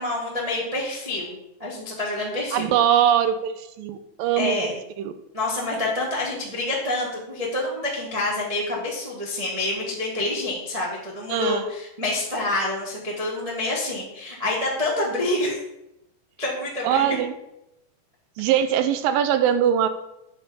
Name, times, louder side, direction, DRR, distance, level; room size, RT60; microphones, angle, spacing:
voice 1, 0.0-2.7 4.4-4.7 5.3-15.6 16.4-17.1, left 2 dB, 40° right, -5 dB, 0.5 m, -27 dB
voice 2, 2.5-5.1 11.3-11.7 16.8-17.3 18.4-19.9, right 9 dB, 85° right, 11 dB, 2.4 m, -22 dB
8.6 x 4.3 x 7.0 m, 0.86 s
omnidirectional pair, 3.9 m